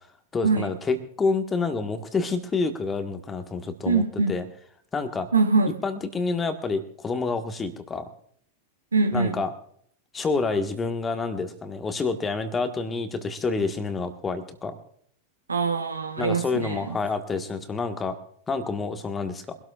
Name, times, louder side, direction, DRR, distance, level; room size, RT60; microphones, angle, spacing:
voice 1, 0.3-4.0 4.3-4.4 4.9-5.3 5.8-8.1 9.1-9.5 10.1-14.8 16.2-18.2 18.5-19.6, left 4 dB, 15° left, 1.6 m, -28 dB
voice 2, 3.9-4.4 5.3-5.7 8.9-9.4 15.5-17.0, right 4 dB, 75° right, 1.2 m, -23 dB
24.5 x 12.5 x 2.5 m
figure-of-eight pair, 90°, 0 cm